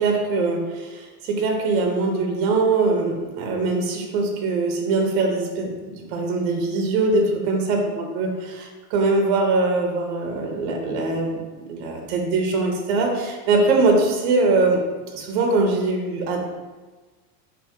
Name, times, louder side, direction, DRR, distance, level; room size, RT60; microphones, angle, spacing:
voice 1, 0.0-5.7 6.1-14.8 15.1-16.4, right 3 dB, 45° right, 1 dB, 0.5 m, -22 dB
2.7 x 2.6 x 3.5 m, 1.3 s
supercardioid pair, 180°, 46 cm